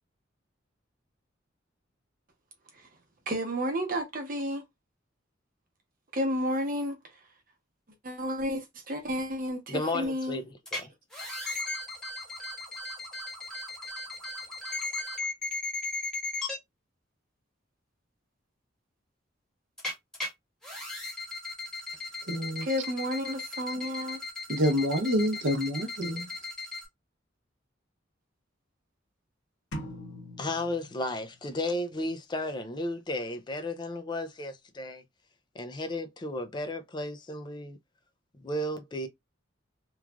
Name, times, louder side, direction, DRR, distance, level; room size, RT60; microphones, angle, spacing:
voice 1, 3.3-4.6 6.1-7.0 8.0-10.4 22.6-24.2, equal, 45° right, 0.9 m, -31 dB
voice 2, 9.7-10.4 10.7-10.9 30.4-35.0 35.5-37.8 38.4-39.1, left 1 dB, 25° left, 0.4 m, -33 dB
sound 1, 10.6-10.8 11.1-16.6 19.8-20.3 20.6-26.8, left 3 dB, 5° left, 1.1 m, -37 dB
voice 3, 22.3-22.7 24.5-26.3, equal, 70° right, 0.7 m, -27 dB
sound 2, 29.7-31.6, equal, 85° left, 0.8 m, -42 dB
3.1 x 2.4 x 2.2 m
head